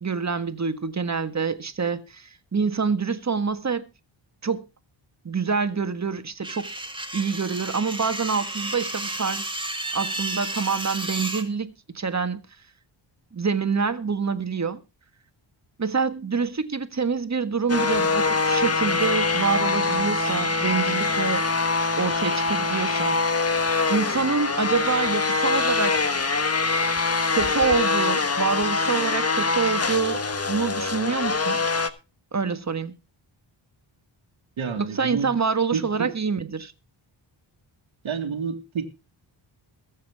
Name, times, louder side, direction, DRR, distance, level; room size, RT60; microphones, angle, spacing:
voice 1, 0.0-3.9 4.4-4.7 5.3-6.7 7.1-9.5 9.9-12.4 13.3-14.8 15.8-21.5 22.0-23.2 23.9-25.9 27.3-31.7 32.3-32.9 34.8-36.7, right 5 dB, 35° right, 1.6 m, -26 dB
sound 1, 6.4-11.4, right 2 dB, 10° right, 2.2 m, -32 dB
sound 2, 17.7-31.9, left 3 dB, 30° left, 1.3 m, -24 dB
voice 2, 34.6-35.3 35.7-36.1 38.0-38.9, right 6 dB, 75° right, 2.0 m, -29 dB
22.0 x 7.6 x 3.5 m
cardioid pair, 80°, 48 cm